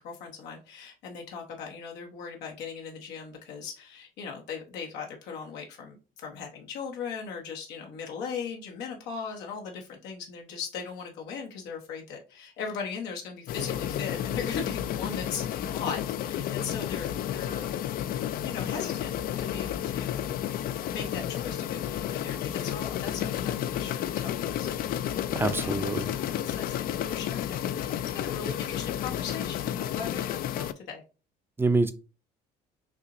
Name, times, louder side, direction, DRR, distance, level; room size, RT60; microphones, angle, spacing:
voice 1, 0.0-17.7 18.4-20.3 20.9-25.8 26.2-31.0, left 6 dB, 90° left, 0.9 m, -39 dB
sound 1, 13.5-30.7, left 11 dB, 60° left, 0.4 m, -31 dB
voice 2, 25.3-26.2 31.6-31.9, right 3 dB, 15° right, 0.5 m, -26 dB
5.8 x 2.9 x 2.5 m
cardioid pair, 110°, 17 cm